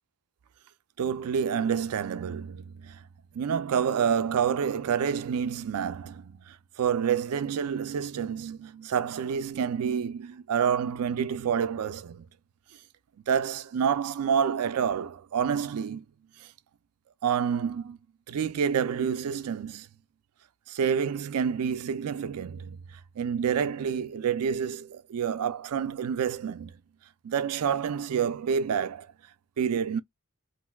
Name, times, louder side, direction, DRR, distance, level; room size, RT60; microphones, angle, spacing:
voice 1, 1.0-3.0 3.3-12.3 13.3-16.0 16.4-16.5 17.2-18.0 18.3-19.9 20.7-26.7 27.2-29.1 29.6-30.0, right 7 dB, 75° right, 0.4 m, -28 dB
2.5 x 2.2 x 3.3 m
head